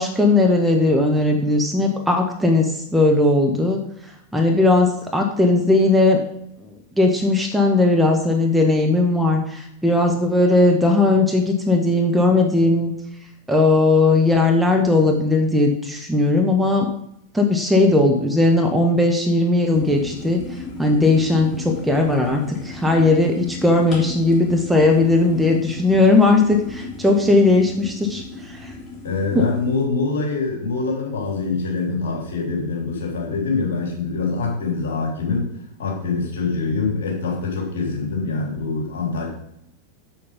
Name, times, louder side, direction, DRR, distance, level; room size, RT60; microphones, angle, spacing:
voice 1, 0.0-3.8 4.3-6.2 6.9-12.9 13.5-16.9 17.3-28.7 29.3-29.5, left 2 dB, 5° right, 2 dB, 1.4 m, -18 dB
sound 1, 19.7-29.8, left 3 dB, 25° left, 3.1 m, -36 dB
voice 2, 29.0-35.5 35.8-39.3, left 4 dB, 60° left, -1 dB, 3.4 m, -24 dB
7.5 x 7.0 x 5.3 m, 0.77 s
figure-of-eight pair, 90°, 0 cm